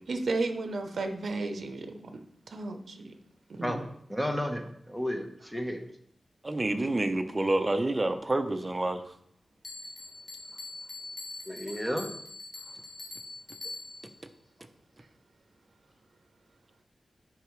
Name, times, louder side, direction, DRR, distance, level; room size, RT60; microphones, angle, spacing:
voice 1, 0.1-2.2 2.5-3.1 3.5-3.8, right 3 dB, 70° right, 0.7 m, -33 dB
voice 2, 3.6-5.8 11.5-12.1, equal, 5° left, 1.0 m, -33 dB
voice 3, 6.4-9.0, right 2 dB, 25° right, 0.7 m, -28 dB
Bell, 9.6-14.2, left 3 dB, 45° left, 2.0 m, -43 dB
10.0 x 4.8 x 3.2 m
wide cardioid pair, 115°, 0 cm